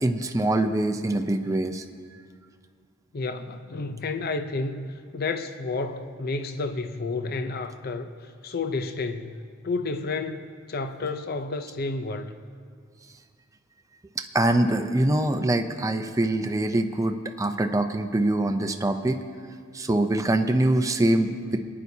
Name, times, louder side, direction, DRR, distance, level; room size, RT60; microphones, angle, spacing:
voice 1, 0.0-1.8 14.2-19.2 19.7-21.6, right 1 dB, 15° right, 6 dB, 0.5 m, -24 dB
voice 2, 3.1-8.1 8.4-9.4 9.6-12.3, left 3 dB, 50° left, 8 dB, 0.6 m, -31 dB
27.5 x 9.6 x 2.8 m, 2.1 s
head